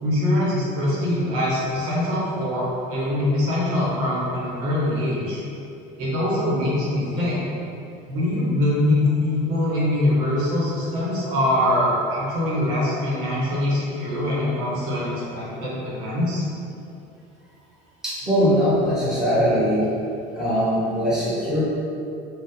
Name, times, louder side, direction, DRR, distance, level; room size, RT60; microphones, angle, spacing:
voice 1, 0.0-5.4 6.0-7.4 8.1-16.4, left 1 dB, 90° right, -7 dB, 1.0 m, -23 dB
voice 2, 18.0-19.8 20.3-21.6, equal, 5° right, -11 dB, 1.3 m, -21 dB
2.6 x 2.4 x 3.6 m, 2.6 s
supercardioid pair, 100°, 19 cm